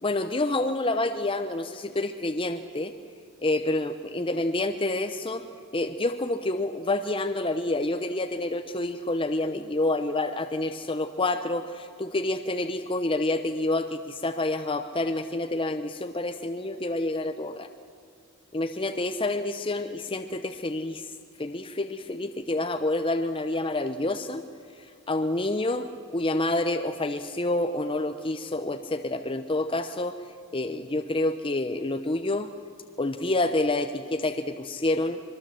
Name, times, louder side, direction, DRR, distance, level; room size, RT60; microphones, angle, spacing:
voice 1, 0.0-2.9 3.4-5.4 5.7-17.7 18.5-21.1 21.4-24.4 24.8-25.9 26.1-30.2 30.5-32.5 33.0-35.2, left 2 dB, 25° left, 7 dB, 0.8 m, -28 dB
25.0 x 22.0 x 7.7 m, 2.2 s
head